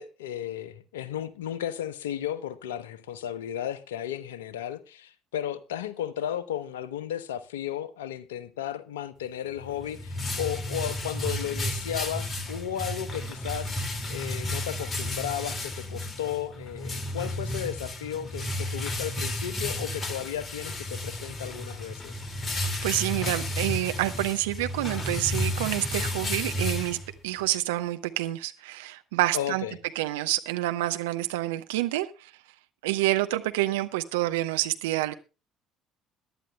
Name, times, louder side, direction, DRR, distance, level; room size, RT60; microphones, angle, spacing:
voice 1, 0.0-13.7 14.1-22.1 29.3-29.8, left 10 dB, 75° left, 0.9 m, -34 dB
sound 1, 9.6-27.4, left 1 dB, 25° left, 2.3 m, -32 dB
voice 2, 22.6-27.0 27.2-29.6 29.9-32.3 32.8-35.1, right 16 dB, 70° right, 0.9 m, -28 dB
22.0 x 11.5 x 2.3 m
figure-of-eight pair, 55°, 0 cm